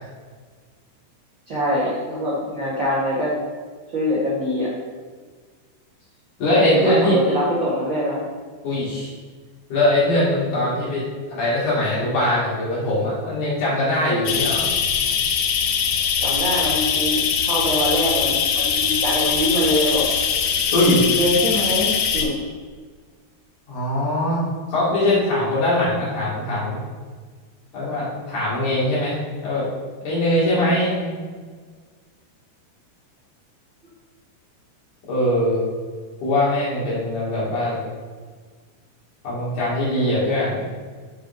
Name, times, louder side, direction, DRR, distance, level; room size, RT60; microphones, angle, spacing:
voice 1, 1.5-3.3 3.9-4.7 6.6-8.2 16.2-20.0 21.1-22.3 30.5-30.7, equal, 90° right, -8 dB, 1.0 m, -23 dB
voice 2, 6.4-7.4 8.6-9.2 9.7-11.1 11.3-14.7 20.7-21.0 23.7-26.8 27.7-29.7 30.0-31.2 35.1-35.6 36.2-37.8 39.2-40.7, left 1 dB, 55° left, -8 dB, 3.5 m, -21 dB
sound 1, 14.3-22.3, left 7 dB, 80° left, 2.6 m, -22 dB
7.5 x 6.7 x 2.7 m, 1.5 s
omnidirectional pair, 4.5 m